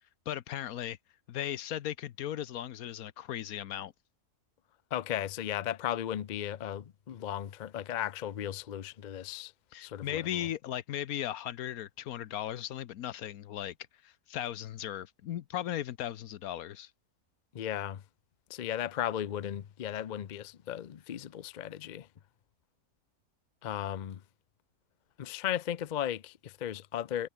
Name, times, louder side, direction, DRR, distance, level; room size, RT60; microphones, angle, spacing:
voice 1, 0.3-1.0 1.3-3.9 9.7-13.7 14.0-16.9, left 11 dB, 75° left, 1.2 m, -37 dB
voice 2, 4.9-9.5 9.8-10.4 17.5-18.0 18.5-22.1 23.6-24.2 25.2-27.3, left 11 dB, 60° left, 0.4 m, -36 dB
omnidirectional pair, 1.5 m